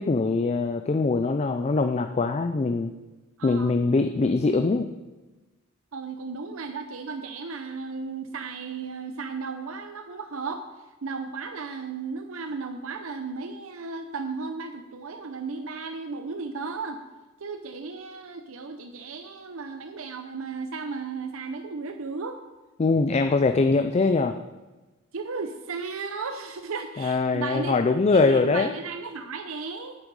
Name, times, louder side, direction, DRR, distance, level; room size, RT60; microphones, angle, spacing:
voice 1, 0.0-2.9 3.4-4.9 22.8-24.4 27.0-28.7, left 3 dB, 30° left, 8 dB, 0.4 m, -22 dB
voice 2, 3.4-3.7 5.9-10.6 11.0-17.0 17.4-22.4 25.1-27.8 28.1-30.0, right 4 dB, 80° right, 6 dB, 0.7 m, -35 dB
9.1 x 8.8 x 4.8 m, 1.2 s
head